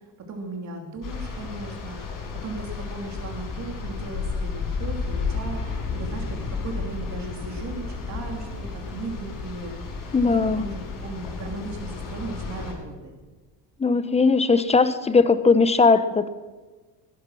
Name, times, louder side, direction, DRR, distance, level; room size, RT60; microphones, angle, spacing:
voice 1, 0.3-2.0 2.4-13.1, right 2 dB, 45° right, 2 dB, 2.9 m, -36 dB
sound 1, 1.0-12.7, left 4 dB, 55° left, 5.6 m, -32 dB
voice 2, 10.1-10.6 13.8-16.3, left 4 dB, 15° left, 12 dB, 1.0 m, -19 dB
18.5 x 10.5 x 6.3 m, 1.3 s
cardioid pair, 120°, 38 cm